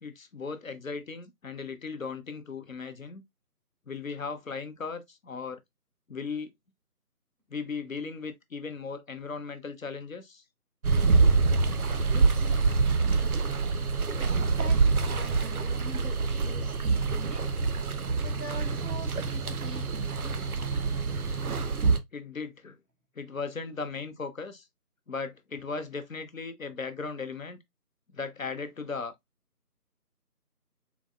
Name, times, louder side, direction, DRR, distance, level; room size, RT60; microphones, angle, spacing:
voice 1, 0.0-3.2 3.9-5.6 6.1-6.5 7.5-10.4 22.1-22.8 23.2-24.6 25.1-27.6 28.1-29.1, left 4 dB, 60° left, 0.6 m, -37 dB
sound 1, 10.8-22.0, right 4 dB, 70° right, 0.5 m, -26 dB
voice 2, 11.5-13.5 14.2-17.6 18.2-20.6, right 2 dB, 85° right, 1.4 m, -45 dB
3.9 x 2.1 x 2.3 m
figure-of-eight pair, 165°, 47 cm